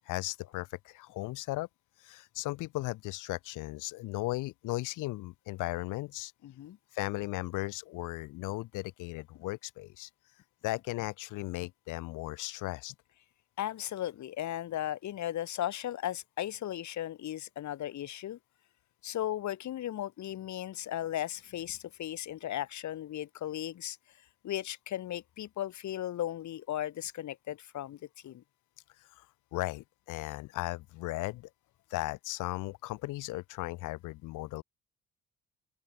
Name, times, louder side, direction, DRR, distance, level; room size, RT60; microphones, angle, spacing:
voice 1, 0.1-1.7 2.0-6.3 6.9-10.1 10.6-12.9 29.2-29.3 29.5-31.5 31.9-34.6, left 19 dB, 90° left, 0.7 m, -36 dB
voice 2, 6.4-6.8 13.6-18.4 19.0-24.0 24.4-28.0 28.2-28.4, left 12 dB, 70° left, 1.8 m, -36 dB
open air
cardioid pair, 90°, 30 cm